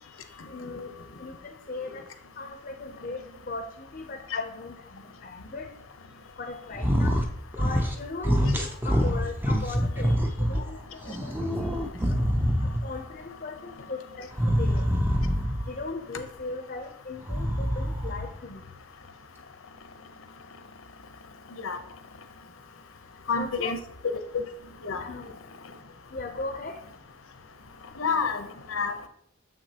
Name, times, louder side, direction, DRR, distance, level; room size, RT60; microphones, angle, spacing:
voice 1, 0.5-0.9 1.2-2.0 2.4-5.7 6.4-7.2 7.6-11.3 11.7-12.2 12.6-14.8 15.7-18.6 23.3-23.8 25.0-25.3 26.1-26.8, left 3 dB, 40° left, 5 dB, 0.5 m, -38 dB
sound 1, 6.7-7.3 7.5-8.0 8.2-10.6 11.0-13.0 14.3-15.7 17.2-18.2, equal, 10° right, 0.5 m, -25 dB
voice 2, 23.3-23.8 24.0-24.4 24.8-25.0 28.0-29.1, left 5 dB, 80° left, 8 dB, 0.7 m, -28 dB
7.3 x 6.0 x 2.8 m, 0.73 s
head